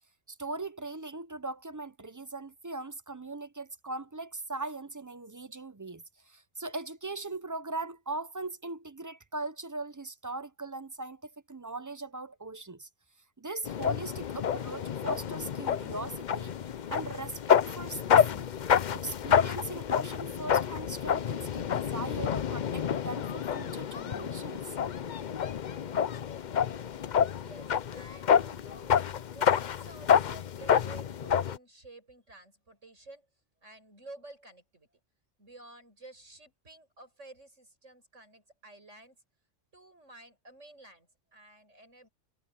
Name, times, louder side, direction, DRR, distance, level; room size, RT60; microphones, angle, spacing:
voice 1, 0.3-12.9 13.4-16.5 16.9-18.5 18.9-24.7, right 3 dB, 25° right, 0.4 m, -40 dB
sound 1, 13.6-31.6, left 8 dB, 50° left, 0.6 m, -28 dB
voice 2, 27.2-29.0 29.3-33.3 33.6-34.9 35.4-39.2 39.7-42.1, right 2 dB, 70° right, 7.7 m, -52 dB
omnidirectional pair, 1.3 m